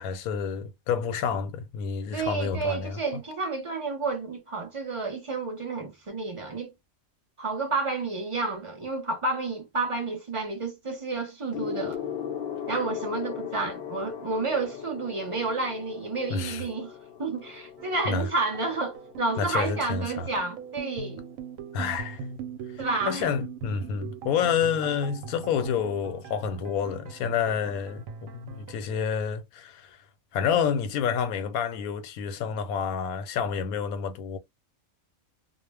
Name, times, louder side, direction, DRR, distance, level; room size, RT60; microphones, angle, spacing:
voice 1, 0.0-3.0 16.3-16.6 18.0-18.3 19.4-20.3 21.7-22.3 23.0-30.0 30.3-34.4, left 7 dB, 85° left, 1.1 m, -29 dB
voice 2, 2.1-6.7 7.4-12.0 12.7-16.9 17.2-21.2 22.8-23.3, right 3 dB, 35° right, 0.5 m, -30 dB
Gong, 11.5-21.3 22.2-22.5, left 8 dB, 65° left, 0.6 m, -39 dB
sound 1, 17.8-28.7, right 6 dB, 75° right, 1.0 m, -41 dB
2.3 x 2.1 x 3.3 m
omnidirectional pair, 1.5 m